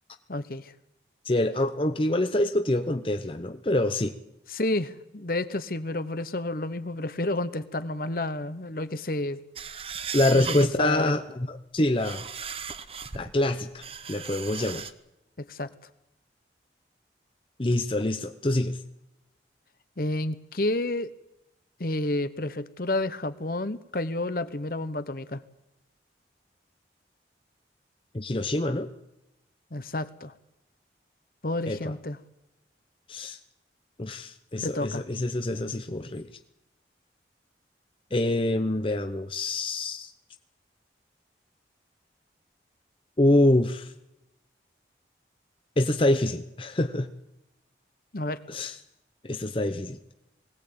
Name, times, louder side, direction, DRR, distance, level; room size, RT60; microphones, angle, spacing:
voice 1, 0.3-0.7 4.5-9.4 10.3-11.1 15.4-15.7 20.0-21.1 21.8-25.4 29.7-30.3 31.4-32.2 34.6-35.0 48.1-48.4, left 2 dB, 55° left, 12 dB, 1.0 m, -30 dB
voice 2, 1.3-4.1 10.1-12.3 13.1-14.9 17.6-18.8 28.1-28.9 31.7-31.8 33.1-33.4 34.0-36.3 38.1-40.1 43.2-43.9 45.8-47.1 48.5-48.8 49.2-50.0, left 1 dB, 30° left, 7 dB, 0.8 m, -26 dB
sound 1, 9.6-10.8 11.8-13.3 13.8-14.9, right 6 dB, 30° right, 0.9 m, -36 dB
21.0 x 17.5 x 8.8 m, 0.90 s
head